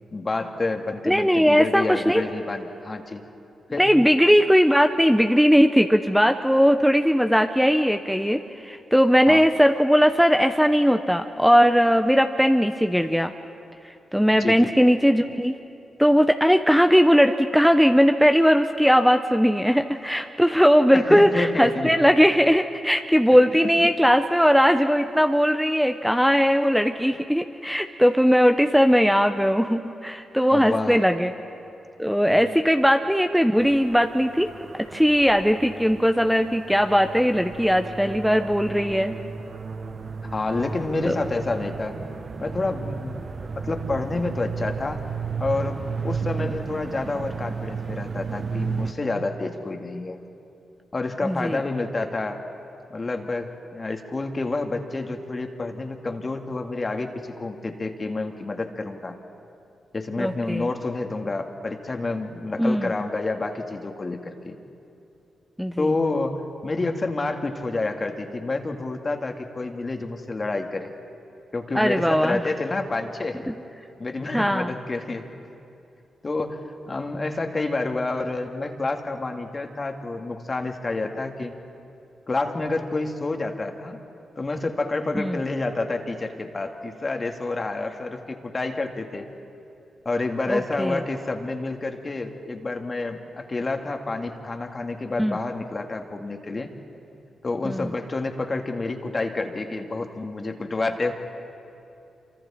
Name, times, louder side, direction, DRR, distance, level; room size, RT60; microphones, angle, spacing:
voice 1, 0.1-3.2 3.7-3.9 9.3-9.5 14.4-14.7 20.9-21.9 23.8-23.9 30.5-31.0 32.3-32.6 40.2-42.0 42.4-45.0 45.4-50.2 50.9-52.4 52.9-59.2 59.9-64.6 65.8-70.9 71.5-73.5 74.0-75.3 76.2-76.6 76.9-81.5 82.3-84.0 84.4-89.3 90.1-96.7 97.4-101.1, left 3 dB, 40° left, 4 dB, 2.2 m, -29 dB
voice 2, 1.1-2.2 3.8-13.3 14.1-15.6 16.0-31.3 32.0-39.1 41.1-41.2 51.2-51.6 60.2-60.7 62.6-62.9 65.6-65.9 71.7-72.4 74.3-74.7 85.1-85.4 90.5-91.0 95.2-95.4 97.6-97.9, equal, ahead, 7 dB, 1.0 m, -19 dB
sound 1, 33.6-48.9, right 5 dB, 55° right, 0.9 m, -34 dB
27.5 x 25.0 x 4.4 m, 2.7 s
supercardioid pair, 40°, 0 cm